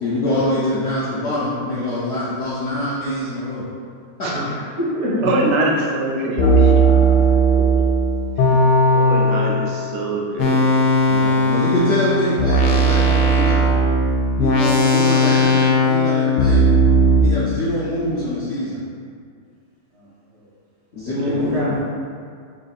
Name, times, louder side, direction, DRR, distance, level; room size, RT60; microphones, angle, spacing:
voice 1, 0.0-3.7 4.2-4.3 8.5-8.6 11.1-13.7 14.4-16.7 17.2-18.8 20.9-21.6, left 1 dB, 65° left, -9 dB, 0.7 m, -24 dB
voice 2, 4.3-5.1 19.9-20.0 20.3-20.4 21.1-21.8, equal, 55° right, -6 dB, 0.8 m, -26 dB
sound 1, 5.2-5.6 6.4-9.8 10.4-17.2, right 1 dB, 80° left, 1.2 m, -16 dB
voice 3, 5.2-6.8 8.9-10.8 21.2-21.5, right 2 dB, 90° right, -1 dB, 1.3 m, -23 dB
3.6 x 2.4 x 4.0 m, 2.2 s
omnidirectional pair, 1.8 m